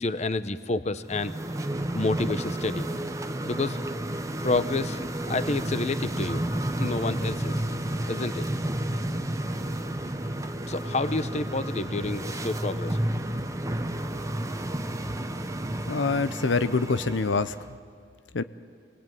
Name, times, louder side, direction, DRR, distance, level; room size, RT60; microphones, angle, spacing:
voice 1, 0.0-1.3 1.9-3.1 3.4-3.8 4.4-5.0 5.3-6.4 6.8-7.6 8.1-8.5 10.7-13.1, left 3 dB, 40° left, 12 dB, 0.8 m, -29 dB
sound 1, 1.0-17.7, right 1 dB, 20° right, 1.0 m, -31 dB
voice 2, 15.9-17.6 18.3-18.4, left 4 dB, 90° left, 13 dB, 0.8 m, -25 dB
28.0 x 21.0 x 9.2 m, 2.2 s
head